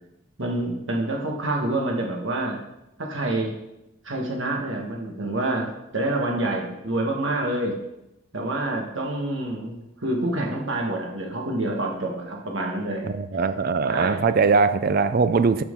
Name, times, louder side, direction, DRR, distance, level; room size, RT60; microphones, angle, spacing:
voice 1, 0.4-2.6 3.0-3.5 4.0-5.7 5.9-7.8 8.3-13.1 13.9-14.2, right 2 dB, 60° right, 0 dB, 1.5 m, -27 dB
voice 2, 13.0-15.6, right 4 dB, 45° right, 12 dB, 0.4 m, -21 dB
12.5 x 4.4 x 3.8 m, 0.90 s
head